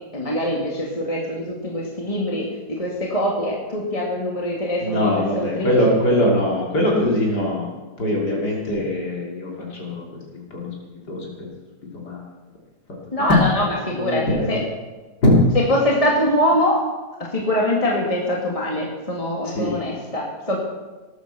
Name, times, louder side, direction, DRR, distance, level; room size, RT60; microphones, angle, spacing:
voice 1, 0.1-6.0 8.3-8.4 13.1-14.6 15.5-16.8 17.2-20.6, left 1 dB, 20° left, -2 dB, 2.3 m, -23 dB
voice 2, 4.8-7.7 8.0-10.0 10.3-10.7 11.1-11.3 12.1-12.2 14.0-14.6 15.2-15.4 19.4-19.7, left 1 dB, 80° left, -2 dB, 3.8 m, -21 dB
18.5 x 9.2 x 7.0 m, 1.2 s
omnidirectional pair, 1.7 m